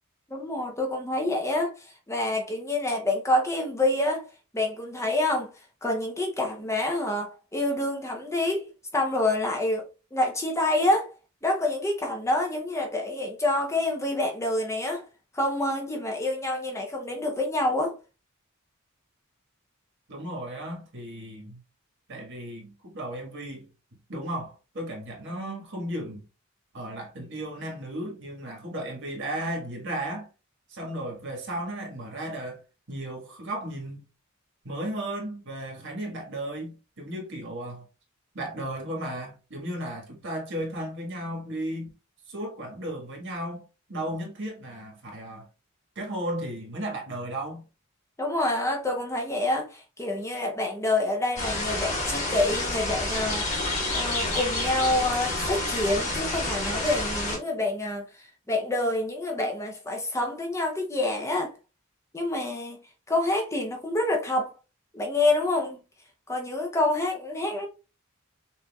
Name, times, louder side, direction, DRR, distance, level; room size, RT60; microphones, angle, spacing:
voice 1, 0.3-4.3 4.5-5.5 5.8-8.6 8.9-9.8 10.1-11.1 11.4-15.0 15.3-18.0 48.2-53.5 53.9-58.1 58.5-61.5 62.1-62.8 63.1-64.5 64.9-65.8 66.3-67.7, left 2 dB, 15° left, 0.7 m, -27 dB
voice 2, 20.1-21.6 22.1-23.7 24.1-26.2 26.7-30.3 30.7-32.6 32.9-34.0 34.6-37.8 38.3-41.9 42.3-45.5 45.9-47.6, right 1 dB, 60° right, 1.6 m, -35 dB
sound 1, 51.4-57.4, left 2 dB, 35° left, 1.8 m, -29 dB
6.0 x 2.7 x 2.3 m
head